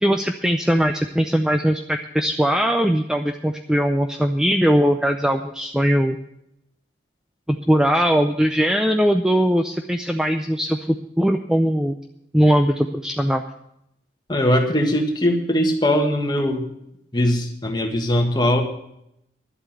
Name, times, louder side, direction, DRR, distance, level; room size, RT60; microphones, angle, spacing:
voice 1, 0.0-6.2 7.5-12.0 12.3-13.4, equal, 5° right, 5 dB, 0.5 m, -20 dB
voice 2, 14.3-16.7 17.1-18.6, left 1 dB, 25° left, 3 dB, 1.6 m, -20 dB
11.5 x 8.2 x 8.9 m, 0.78 s
head